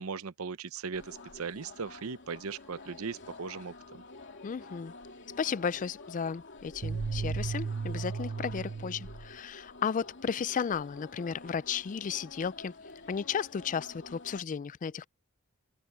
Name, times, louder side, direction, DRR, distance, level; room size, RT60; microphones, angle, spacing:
voice 1, 0.0-4.0, right 5 dB, 75° right, 0.7 m, -38 dB
sound 1, 0.9-14.4, left 2 dB, 55° left, 2.9 m, -48 dB
voice 2, 4.4-4.9 5.4-12.7 13.1-15.1, left 6 dB, 35° left, 0.3 m, -34 dB
sound 2, 6.8-9.3, right 5 dB, 45° right, 0.4 m, -35 dB
head